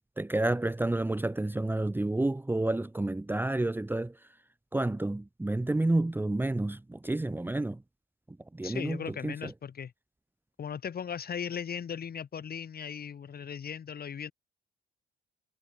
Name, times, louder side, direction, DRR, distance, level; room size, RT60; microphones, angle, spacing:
voice 1, 0.0-4.2 4.7-7.8 8.3-9.5, right 2 dB, 10° right, 1.0 m, -30 dB
voice 2, 8.6-9.9 10.6-14.3, left 7 dB, 50° left, 4.4 m, -37 dB
cardioid pair, 90°, 20 cm